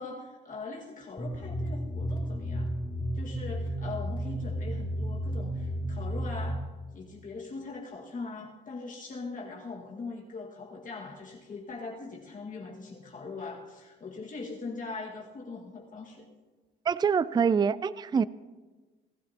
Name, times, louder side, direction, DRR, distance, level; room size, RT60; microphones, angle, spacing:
voice 1, 0.0-2.7 3.1-6.6 6.9-16.3, left 3 dB, 40° left, -2 dB, 1.9 m, -41 dB
sound 1, 1.2-6.5, equal, 25° left, 3.3 m, -33 dB
voice 2, 16.9-18.2, right 6 dB, 20° right, 17 dB, 0.4 m, -25 dB
28.5 x 12.5 x 2.9 m, 1.3 s
cardioid pair, 90°, 20 cm